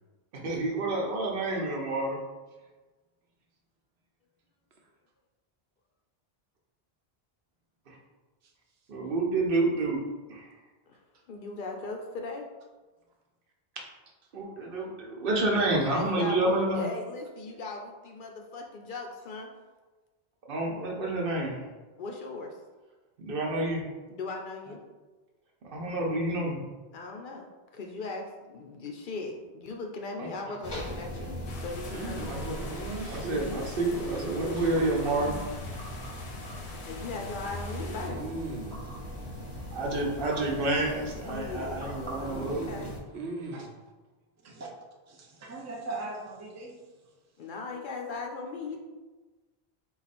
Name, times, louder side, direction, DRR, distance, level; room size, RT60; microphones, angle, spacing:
voice 1, 0.4-2.2 8.9-10.0 10.3-10.5 14.3-16.9 20.5-21.6 23.2-23.8 25.7-26.6 30.2-30.3 32.3-32.7 33.1-35.4 39.7-42.6, right 2 dB, 60° right, -1 dB, 0.9 m, -29 dB
voice 2, 11.3-12.5 15.9-19.5 22.0-22.6 24.1-24.8 26.9-27.5 27.7-32.3 36.9-38.2 41.3-42.9 47.4-48.8, left 3 dB, 60° left, 2 dB, 0.6 m, -38 dB
sound 1, 30.6-43.0, equal, 25° left, 0.8 m, -39 dB
sound 2, 31.5-38.1, left 3 dB, 90° left, 1.0 m, -46 dB
voice 3, 31.8-33.5 33.8-35.5 37.7-38.8 42.3-43.7, right 2 dB, 85° right, 0 dB, 1.0 m, -39 dB
voice 4, 45.1-46.9, right 2 dB, 25° right, 0 dB, 0.4 m, -40 dB
4.1 x 2.4 x 4.1 m, 1.2 s
omnidirectional pair, 1.1 m